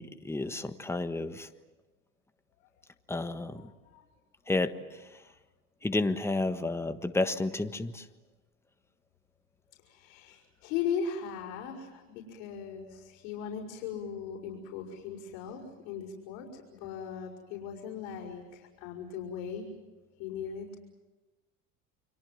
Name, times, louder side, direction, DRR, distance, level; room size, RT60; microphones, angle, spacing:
voice 1, 0.0-1.5 3.1-3.7 4.5-5.0 5.8-8.0, left 2 dB, 5° left, 8 dB, 1.4 m, -31 dB
voice 2, 3.5-4.0 9.8-19.7 20.2-20.8, left 7 dB, 80° left, -6 dB, 5.7 m, -38 dB
29.5 x 23.0 x 7.6 m, 1.1 s
supercardioid pair, 95°, 39 cm